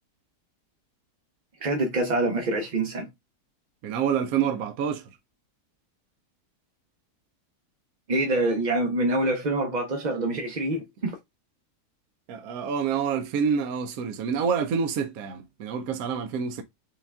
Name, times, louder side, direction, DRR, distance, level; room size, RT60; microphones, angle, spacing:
voice 1, 1.6-3.1 8.1-11.2, right 2 dB, 45° right, 0.5 m, -26 dB
voice 2, 3.8-5.0 10.7-10.8 12.3-16.6, right 7 dB, 70° right, 1.0 m, -27 dB
5.3 x 2.3 x 3.4 m
omnidirectional pair, 1.7 m